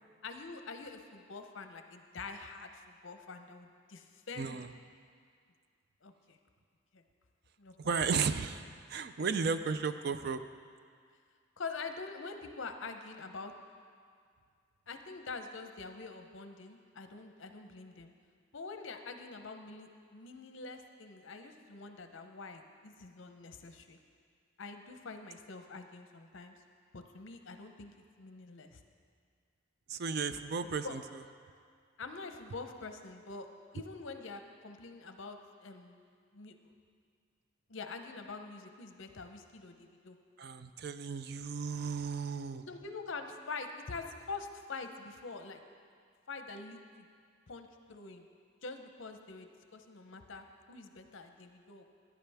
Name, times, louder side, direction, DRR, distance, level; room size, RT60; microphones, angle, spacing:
voice 1, 0.2-4.6 6.0-6.4 6.9-7.0 7.6-7.7 8.0-8.1 11.6-13.5 14.9-18.1 18.5-24.0 24.6-26.6 26.9-28.8 30.8-30.9 32.0-33.5 33.7-36.0 36.3-36.7 37.7-40.2 42.7-45.6 46.3-47.1 47.5-48.3 48.6-51.8, left 4 dB, 65° left, 6 dB, 0.7 m, -45 dB
voice 2, 4.4-4.7 7.8-8.6 8.9-10.4 29.9-31.0 40.4-42.6, right 5 dB, 50° right, 11 dB, 0.4 m, -34 dB
15.5 x 9.9 x 3.5 m, 2.1 s
head